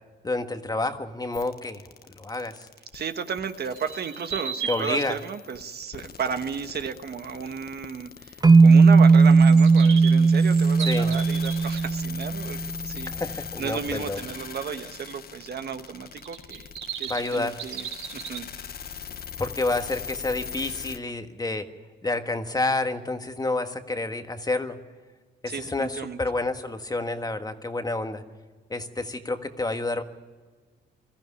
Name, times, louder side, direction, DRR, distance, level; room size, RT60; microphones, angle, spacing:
voice 1, 0.2-2.7 4.7-5.2 10.8-11.1 13.0-14.2 17.1-17.6 19.4-21.7 22.0-24.8 25.4-28.2 28.7-30.0, left 2 dB, 20° left, 7 dB, 1.6 m, -29 dB
sound 1, 1.3-21.0, left 7 dB, 50° left, 1.3 m, -41 dB
voice 2, 2.9-13.1 13.6-17.9 18.1-18.5 25.5-26.2, right 6 dB, 55° right, 8 dB, 1.4 m, -33 dB
sound 2, 3.7-5.1 9.2-11.8 16.2-18.4, right 7 dB, 85° right, 3.7 m, -35 dB
sound 3, 8.4-12.7, right 4 dB, 20° right, 0.6 m, -17 dB
22.0 x 14.5 x 9.9 m, 1.4 s
cardioid pair, 90°, 20 cm